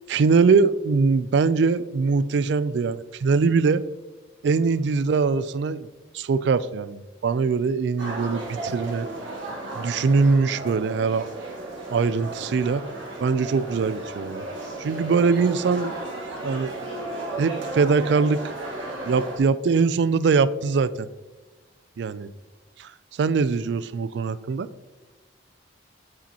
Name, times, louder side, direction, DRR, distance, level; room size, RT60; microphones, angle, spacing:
voice 1, 0.1-3.8 4.4-5.9 6.1-9.1 9.8-11.3 11.9-12.8 13.2-14.4 14.8-15.9 16.4-16.7 17.4-18.4 19.1-21.1 22.0-22.3 22.8-22.9 23.2-24.7, right 4 dB, 60° right, 15 dB, 0.3 m, -22 dB
sound 1, 8.0-19.4, right 2 dB, 75° right, 1.6 m, -34 dB
8.3 x 5.1 x 2.9 m, 1.2 s
head